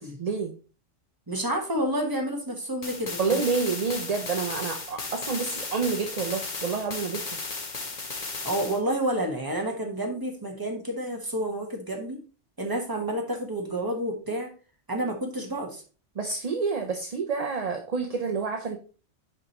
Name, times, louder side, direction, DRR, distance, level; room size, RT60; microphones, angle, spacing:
voice 1, 0.2-0.5 3.2-7.4 16.2-18.8, right 5 dB, 40° right, 3 dB, 0.6 m, -28 dB
voice 2, 1.3-3.4 8.4-12.2 12.6-14.5 14.9-15.8, right 1 dB, 20° right, 1 dB, 1.3 m, -29 dB
sound 1, 2.8-8.8, left 3 dB, 40° left, 1.1 m, -35 dB
7.8 x 5.0 x 2.9 m, 0.37 s
omnidirectional pair, 1.3 m